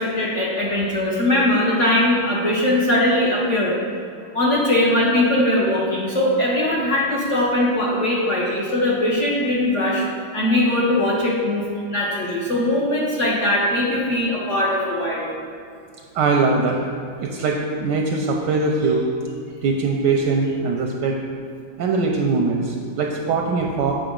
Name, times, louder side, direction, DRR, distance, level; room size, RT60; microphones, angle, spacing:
voice 1, 0.0-3.8 4.3-10.0 10.3-15.3, left 1 dB, 55° left, -5 dB, 0.8 m, -20 dB
voice 2, 16.1-16.8 17.2-19.0 19.6-21.2 21.8-23.9, right 4 dB, 75° right, 1 dB, 1.1 m, -21 dB
7.8 x 5.1 x 3.7 m, 2.4 s
omnidirectional pair, 2.3 m